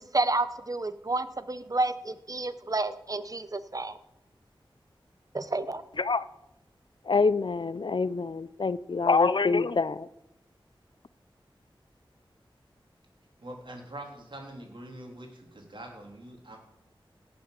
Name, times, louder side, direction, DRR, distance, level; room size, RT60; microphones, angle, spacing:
voice 1, 0.0-4.0 5.3-5.8, right 2 dB, 40° right, 13 dB, 0.9 m, -30 dB
voice 2, 7.0-10.1, left 4 dB, 60° left, 16 dB, 0.5 m, -25 dB
voice 3, 13.4-16.6, right 1 dB, 60° right, 1 dB, 3.6 m, -44 dB
17.5 x 7.2 x 6.7 m, 0.87 s
wide cardioid pair, 55°, 9 cm